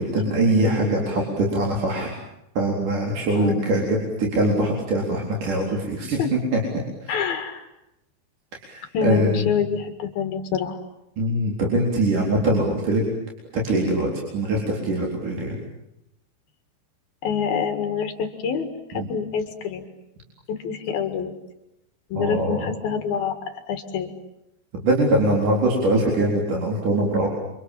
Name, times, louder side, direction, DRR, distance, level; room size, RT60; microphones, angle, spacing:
voice 1, 0.0-2.1 2.6-6.2 6.5-6.6 7.0-7.1 8.6-9.4 11.2-13.0 13.5-15.5 19.0-19.1 22.2-22.7 24.8-27.3, right 1 dB, 40° right, -1 dB, 5.2 m, -22 dB
voice 2, 3.3-3.9 6.2-6.3 7.1-7.7 8.9-10.8 17.2-19.9 20.5-21.3 22.1-23.4 23.7-24.1, left 7 dB, 55° left, 7 dB, 3.3 m, -26 dB
30.0 x 26.5 x 7.5 m, 0.86 s
omnidirectional pair, 5.8 m